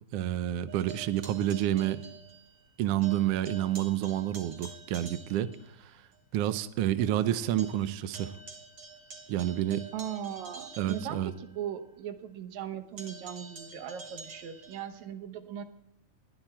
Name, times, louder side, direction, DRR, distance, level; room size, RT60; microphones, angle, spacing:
voice 1, 0.1-2.1 2.8-5.5 6.3-8.4 9.3-9.9 10.8-11.3, right 12 dB, 90° right, 13 dB, 1.3 m, -29 dB
sound 1, 0.7-2.7 3.0-5.7 6.1-6.2 6.6-6.7 7.0-11.8 13.0-14.9, right 4 dB, 55° right, 3.5 m, -48 dB
voice 2, 9.9-15.6, right 9 dB, 70° right, 9 dB, 2.2 m, -39 dB
20.5 x 12.5 x 4.4 m, 0.78 s
omnidirectional pair, 3.6 m